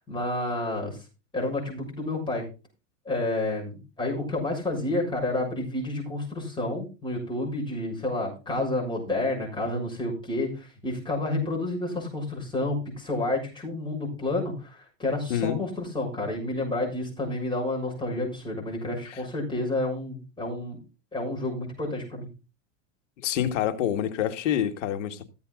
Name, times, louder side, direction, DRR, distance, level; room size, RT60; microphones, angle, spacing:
voice 1, 0.1-1.0 1.3-2.4 3.1-20.8 21.1-22.3, left 2 dB, 10° left, 6.9 m, -30 dB
voice 2, 15.3-15.6 19.1-19.2 23.2-25.2, left 10 dB, 70° left, 2.0 m, -27 dB
15.0 x 8.3 x 4.0 m
supercardioid pair, 140°, 38 cm